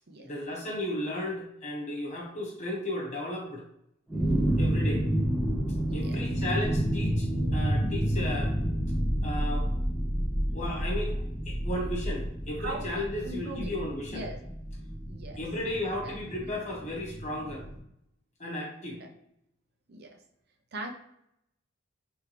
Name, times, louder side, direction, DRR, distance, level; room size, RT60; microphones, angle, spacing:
voice 1, 0.2-3.7 4.6-5.0 5.9-8.6 9.2-9.7 10.5-11.2 11.4-14.3 15.4-17.6 18.4-19.0, left 1 dB, 35° left, -2 dB, 1.3 m, -34 dB
sound 1, 4.1-17.8, equal, 5° right, 0.8 m, -30 dB
voice 2, 5.9-6.2 12.6-13.7 14.1-14.4 15.1-15.4 16.0-16.1 18.9-19.1 19.9-20.2 20.7-20.9, right 1 dB, 50° right, 3 dB, 0.6 m, -39 dB
4.6 x 3.5 x 3.2 m, 0.77 s
head